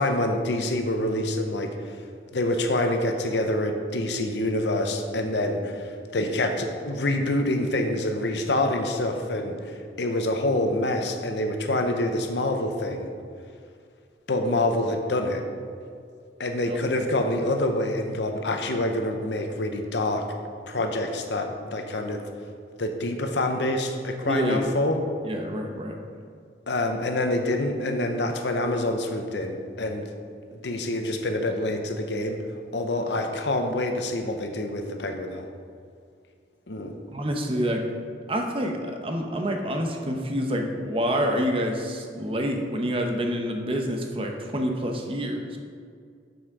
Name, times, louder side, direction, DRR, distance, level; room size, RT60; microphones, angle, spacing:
voice 1, 0.0-1.7 2.3-13.1 14.3-15.4 16.4-20.3 20.7-22.2 22.8-25.0 26.7-30.0 30.5-32.4 32.7-35.4 36.7-36.9, left 1 dB, 80° left, 5 dB, 0.9 m, -26 dB
voice 2, 24.3-24.8 25.2-26.0 37.1-37.8 38.3-45.6, equal, 30° right, 3 dB, 0.8 m, -27 dB
7.1 x 6.1 x 4.9 m, 2.2 s
head